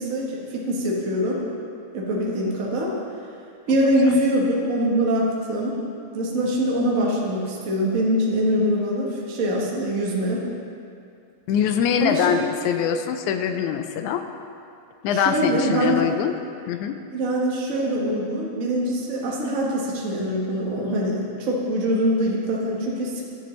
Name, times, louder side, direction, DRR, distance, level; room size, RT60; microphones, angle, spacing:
voice 1, 0.0-1.3 1.9-2.9 3.7-5.8 6.1-10.4 12.0-12.4 15.1-16.0 17.1-23.2, equal, 75° right, -3 dB, 0.7 m, -23 dB
voice 2, 11.5-14.2 15.0-16.3 16.7-16.9, left 8 dB, 85° left, 7 dB, 1.9 m, -23 dB
12.0 x 7.5 x 3.1 m, 2.4 s
omnidirectional pair, 3.4 m